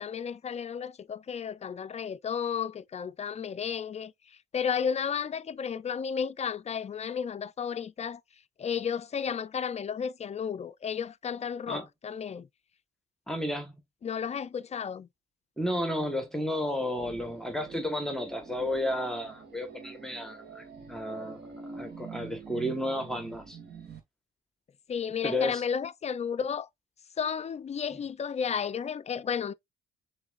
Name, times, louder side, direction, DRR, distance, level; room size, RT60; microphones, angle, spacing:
voice 1, 0.0-4.1 4.5-8.2 8.6-12.5 14.0-15.1 24.9-26.7 27.2-29.5, left 7 dB, 35° left, 0.4 m, -33 dB
voice 2, 13.3-13.8 15.6-20.6 20.9-23.6 25.2-25.6, left 1 dB, ahead, 1.1 m, -32 dB
sound 1, 16.7-24.0, right 5 dB, 55° right, 1.8 m, -46 dB
6.7 x 3.2 x 2.4 m
cardioid pair, 90°, 20 cm